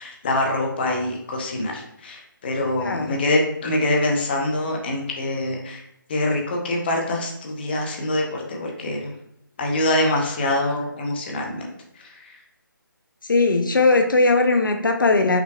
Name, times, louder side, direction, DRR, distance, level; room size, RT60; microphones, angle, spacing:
voice 1, 0.0-5.8 6.1-9.1 9.6-11.7 11.9-12.4, left 1 dB, 30° left, 0 dB, 0.8 m, -25 dB
voice 2, 2.8-3.2 13.2-15.4, left 3 dB, 70° left, 5 dB, 0.6 m, -19 dB
5.7 x 3.1 x 2.3 m, 0.79 s
figure-of-eight pair, 155°, 11 cm